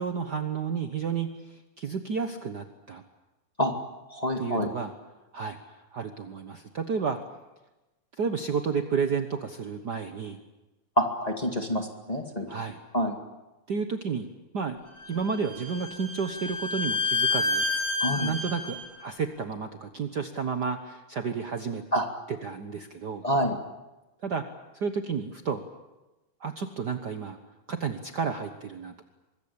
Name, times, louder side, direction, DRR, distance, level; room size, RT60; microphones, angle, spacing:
voice 1, 0.0-3.0 4.4-4.9 5.3-7.2 8.1-10.4 12.5-12.8 13.7-14.3 14.5-14.8 15.1-17.7 18.1-21.8 22.3-23.2 24.2-24.4 24.7-25.6 26.4-27.4 27.7-29.0, right 5 dB, 75° right, 7 dB, 0.9 m, -31 dB
voice 2, 4.1-4.7 11.0-12.5 12.9-13.1 18.0-18.3 21.9-22.1 23.2-23.6, equal, 15° left, 3 dB, 1.8 m, -27 dB
Bowed string instrument, 15.0-18.8, left 3 dB, 40° left, 6.4 m, -29 dB
24.5 x 22.0 x 8.8 m, 1.1 s
omnidirectional pair, 3.7 m